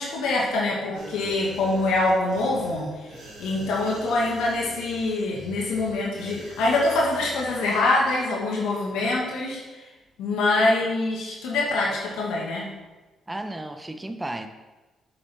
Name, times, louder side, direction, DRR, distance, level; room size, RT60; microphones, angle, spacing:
voice 1, 0.0-9.9 10.2-12.7, left 2 dB, 90° left, -2 dB, 1.4 m, -25 dB
sound 1, 0.9-8.3 8.6-8.8, right 2 dB, 80° right, 2.8 m, -44 dB
voice 2, 13.3-14.5, right 1 dB, 15° right, 8 dB, 0.8 m, -33 dB
8.2 x 7.7 x 3.4 m, 1.2 s
cardioid pair, 90°, 0 cm